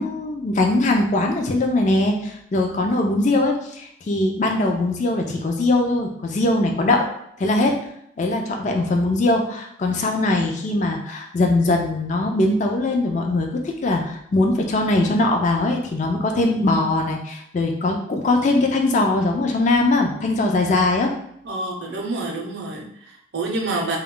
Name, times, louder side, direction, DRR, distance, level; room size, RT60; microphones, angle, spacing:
voice 1, 0.0-7.1 7.4-7.8 8.2-21.1, left 2 dB, 40° left, 2 dB, 0.3 m, -21 dB
voice 2, 21.4-24.0, right 2 dB, 65° right, 0 dB, 0.6 m, -28 dB
2.2 x 2.1 x 3.6 m, 0.72 s
head